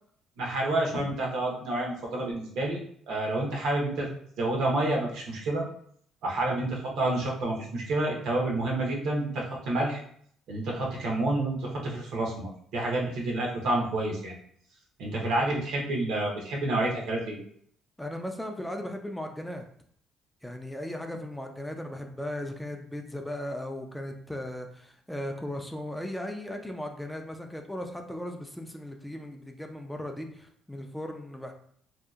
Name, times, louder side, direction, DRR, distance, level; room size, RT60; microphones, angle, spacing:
voice 1, 0.4-2.8 3.1-4.1 4.4-5.6 6.2-10.0 10.5-14.3 15.0-17.4, right 2 dB, 80° right, -2 dB, 0.8 m, -29 dB
voice 2, 18.0-19.6 20.4-31.5, left 1 dB, 5° left, 4 dB, 0.3 m, -37 dB
2.7 x 2.3 x 2.3 m, 0.62 s
cardioid pair, 95°, 0 cm